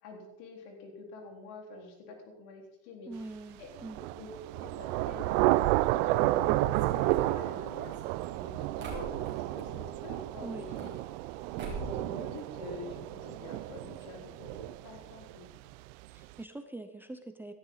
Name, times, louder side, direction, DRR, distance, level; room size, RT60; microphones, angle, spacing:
voice 1, 0.0-3.1 3.6-7.9 8.3-10.9 11.5-15.5, left 3 dB, 75° left, 1 dB, 4.3 m, -47 dB
voice 2, 3.1-4.0 10.4-10.7 16.1-17.5, right 2 dB, 5° right, 7 dB, 0.7 m, -43 dB
Thunder / Rain, 3.8-15.4, right 17 dB, 75° right, 0.7 m, -31 dB
sound 1, 6.7-9.7 10.5-11.3 11.6-12.1 12.3-13.1 13.4-13.5 13.7-13.8 14.5-14.6 14.9-15.1, right 4 dB, 30° right, 4.5 m, -44 dB
18.0 x 13.0 x 4.1 m, 0.91 s
cardioid pair, 145°, 38 cm